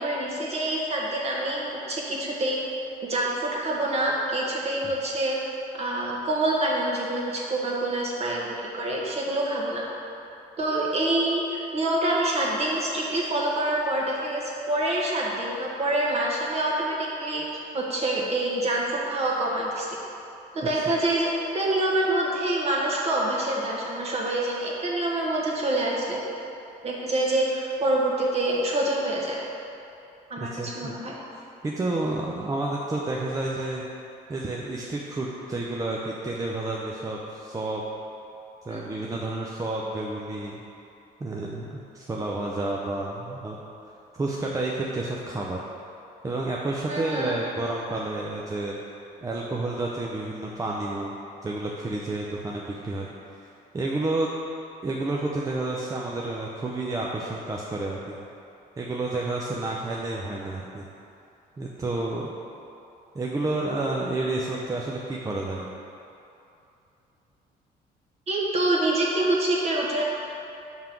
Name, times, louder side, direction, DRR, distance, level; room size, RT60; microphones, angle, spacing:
voice 1, 0.0-2.6 3.0-5.4 5.7-9.8 10.6-17.4 17.7-19.9 20.5-26.2 26.8-29.4 30.3-31.1 38.7-38.9 46.9-47.3 68.3-70.0, right 1 dB, 40° right, -3 dB, 1.3 m, -26 dB
voice 2, 30.4-30.9 31.6-33.8 34.3-37.8 38.7-40.5 41.2-43.6 44.1-45.6 46.2-48.8 49.2-51.2 51.4-53.1 53.7-54.3 54.8-58.2 58.8-60.9 61.6-62.3 63.1-65.7, right 2 dB, 20° right, -3 dB, 0.5 m, -30 dB
5.6 x 3.8 x 5.9 m, 2.8 s
cardioid pair, 110°, 17 cm